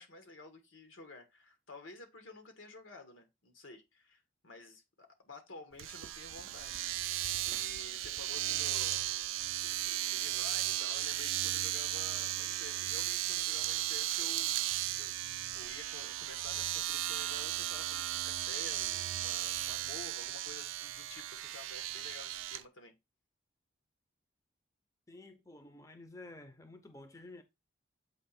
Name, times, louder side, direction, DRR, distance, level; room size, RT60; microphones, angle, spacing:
voice 1, 0.0-6.8 7.4-9.1 9.5-14.5 15.0-15.2 15.5-22.9, left 3 dB, 90° left, 1.5 m, -51 dB
Domestic sounds home sounds, 5.8-22.6, right 14 dB, 85° right, 0.4 m, -35 dB
voice 2, 25.1-27.4, left 2 dB, 15° left, 0.6 m, -51 dB
7.7 x 2.9 x 4.2 m
head